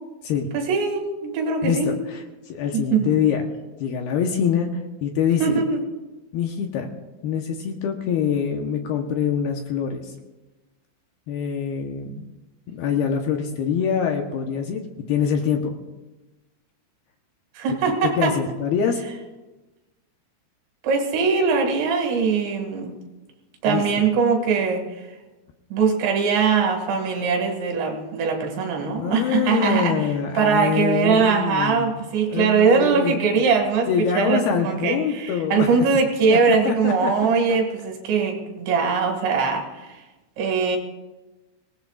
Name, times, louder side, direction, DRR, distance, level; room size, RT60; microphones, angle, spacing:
voice 1, 0.5-1.9 2.7-3.2 5.4-5.8 17.6-18.3 20.8-22.9 23.6-25.1 25.7-30.0 30.4-33.9 34.1-40.0 40.4-40.8, right 5 dB, 75° right, 3 dB, 4.2 m, -21 dB
voice 2, 1.6-2.2 2.5-3.4 3.8-4.7 5.0-5.6 6.3-6.9 7.2-10.1 11.3-12.3 12.7-14.8 15.1-15.8 18.2-19.0 23.7-23.8 29.0-32.0 32.3-33.2 33.9-35.7 36.3-37.1 37.5-37.6, left 7 dB, 70° left, 3 dB, 2.6 m, -24 dB
25.0 x 19.0 x 2.4 m, 1.1 s
omnidirectional pair, 5.3 m